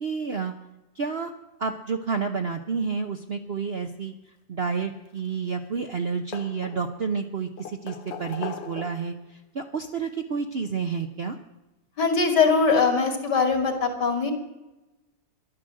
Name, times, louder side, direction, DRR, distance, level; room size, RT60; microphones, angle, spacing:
voice 1, 0.0-0.5 1.0-1.3 1.6-4.1 4.5-11.4, right 5 dB, 50° right, 5 dB, 0.7 m, -30 dB
sound 1, 5.0-5.7 5.9-7.1 7.6-9.2 10.4-10.5 12.1-12.2 12.5-12.6, left 7 dB, 85° left, 1.8 m, -39 dB
voice 2, 12.0-14.3, left 5 dB, 65° left, 5 dB, 2.9 m, -21 dB
12.5 x 11.5 x 7.5 m, 1.0 s
omnidirectional pair, 2.0 m